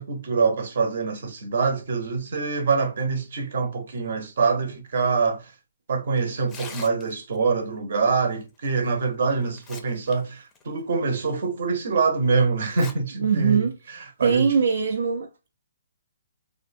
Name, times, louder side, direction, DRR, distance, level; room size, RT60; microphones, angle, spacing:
voice 1, 0.0-5.5 5.9-13.7 14.2-14.5, right 4 dB, 55° right, 0.8 m, -25 dB
Tearing, 6.4-7.4 8.8-8.9 9.4-10.1 10.5-10.6 11.3-11.4 12.6-12.9 13.3-13.4 14.3-14.5, left 4 dB, 15° left, 0.4 m, -42 dB
voice 2, 13.1-13.8 14.2-15.5, right 6 dB, 80° right, 0.4 m, -22 dB
2.5 x 2.1 x 2.6 m
hypercardioid pair, 160°, 0 cm